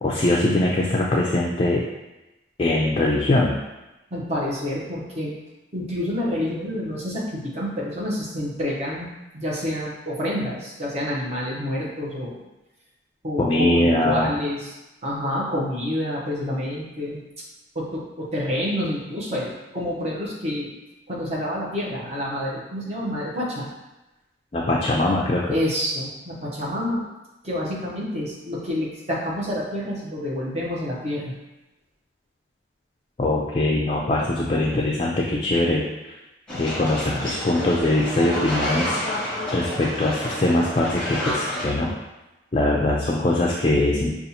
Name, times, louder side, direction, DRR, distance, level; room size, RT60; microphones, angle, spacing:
voice 1, 0.0-1.8 2.6-3.6 13.4-14.3 24.5-25.5 33.2-35.8 36.6-41.9 42.5-44.1, left 1 dB, 30° left, -3 dB, 0.3 m, -22 dB
voice 2, 4.1-5.3 5.7-9.1 9.3-12.4 13.2-17.2 17.7-20.7 21.1-23.7 25.5-27.0 27.4-31.3 37.1-37.3, left 1 dB, 35° right, -6 dB, 0.9 m, -28 dB
sound 1, 36.5-41.7, left 1 dB, 5° left, 1.0 m, -29 dB
5.4 x 2.4 x 2.8 m, 1.0 s
head